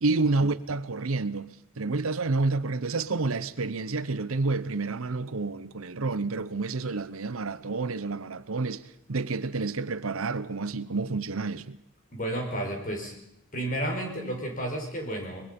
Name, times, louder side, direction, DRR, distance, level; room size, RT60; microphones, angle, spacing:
voice 1, 0.0-1.5 1.8-11.8, right 3 dB, 80° right, 0.9 m, -29 dB
voice 2, 12.1-13.2 13.5-15.5, right 1 dB, 40° left, 5.3 m, -32 dB
23.5 x 22.0 x 5.4 m
head